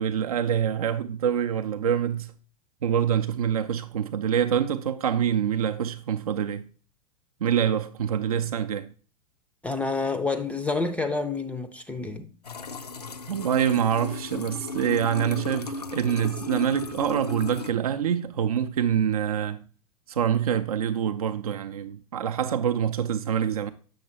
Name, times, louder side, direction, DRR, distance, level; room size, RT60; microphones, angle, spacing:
voice 1, 0.0-2.3 2.8-6.7 7.4-8.9 13.3-19.6 20.1-23.7, right 8 dB, 70° right, 0.4 m, -25 dB
voice 2, 9.6-12.3, left 3 dB, 5° left, 0.4 m, -28 dB
sound 1, 12.4-17.7, left 4 dB, 85° left, 0.5 m, -36 dB
7.7 x 6.6 x 2.8 m
figure-of-eight pair, 90°, 20 cm